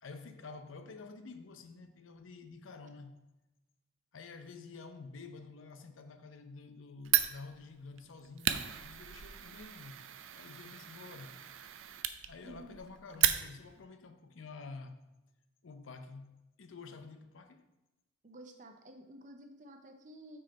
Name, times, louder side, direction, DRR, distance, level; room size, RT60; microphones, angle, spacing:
voice 1, 0.0-3.2 4.1-10.0 10.4-11.4 12.3-15.0 15.6-17.6, left 4 dB, 85° left, 0.6 m, -49 dB
Fire, 7.0-13.8, right 11 dB, 80° right, 0.4 m, -35 dB
voice 2, 12.4-12.8 18.2-20.4, right 1 dB, 40° right, 0.7 m, -52 dB
6.1 x 4.7 x 4.2 m
head